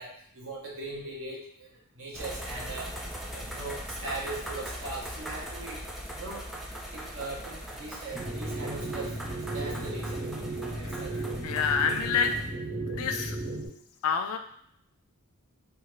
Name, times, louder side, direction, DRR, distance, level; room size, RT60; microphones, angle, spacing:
voice 1, 0.0-1.7 2.0-2.9 3.3-5.8 6.1-6.4 6.9-9.1 9.5-10.3 10.7-11.2, right 2 dB, 65° right, -3 dB, 0.8 m, -39 dB
sound 1, 2.1-12.5, equal, ahead, 0.3 m, -40 dB
sound 2, 8.1-13.7, right 2 dB, 30° right, 1.3 m, -35 dB
voice 2, 11.4-12.4 12.8-13.4 14.0-14.4, left 6 dB, 70° left, 6 dB, 0.4 m, -27 dB
2.7 x 2.3 x 3.0 m, 0.69 s
head